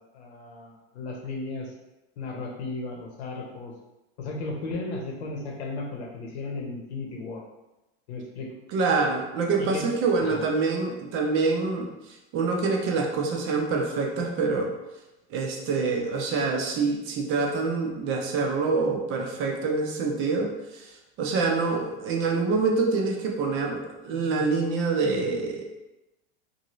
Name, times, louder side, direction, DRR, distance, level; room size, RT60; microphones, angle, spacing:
voice 1, 0.1-1.7 2.2-3.7 4.2-7.4 8.1-8.5 9.6-9.9 10.2-10.4, left 3 dB, 90° left, 0 dB, 0.8 m, -35 dB
voice 2, 8.7-11.9 12.3-14.7 15.3-20.9 21.2-25.6, right 4 dB, 40° right, 1 dB, 0.6 m, -26 dB
2.8 x 2.6 x 3.0 m, 0.99 s
supercardioid pair, 135°, 32 cm